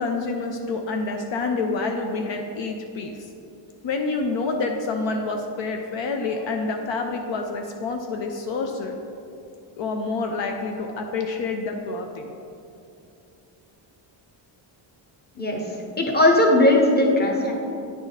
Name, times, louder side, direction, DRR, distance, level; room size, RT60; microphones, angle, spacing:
voice 1, 0.0-3.3 3.8-9.0 9.7-12.3, left 3 dB, 65° left, 3 dB, 0.7 m, -28 dB
voice 2, 15.4-17.5, left 1 dB, 20° left, 0 dB, 1.1 m, -19 dB
9.4 x 3.7 x 4.1 m, 2.7 s
cardioid pair, 95°, 48 cm